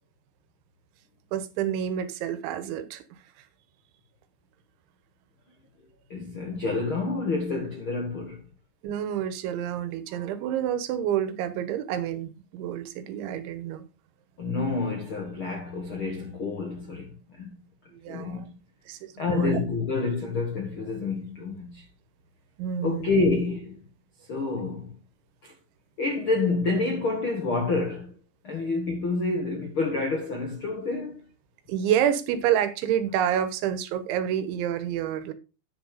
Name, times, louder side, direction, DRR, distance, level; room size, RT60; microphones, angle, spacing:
voice 1, 1.3-3.0 8.8-13.8 17.9-18.5 18.9-19.6 22.6-23.1 31.7-35.3, right 10 dB, 80° right, 3.4 m, -28 dB
voice 2, 6.1-8.4 14.4-17.6 18.1-18.5 19.2-21.9 22.8-23.9 24.3-25.0 25.4-25.5 26.0-28.1 28.4-31.3, left 3 dB, 70° left, 1.2 m, -28 dB
10.0 x 6.5 x 4.9 m
omnidirectional pair, 5.3 m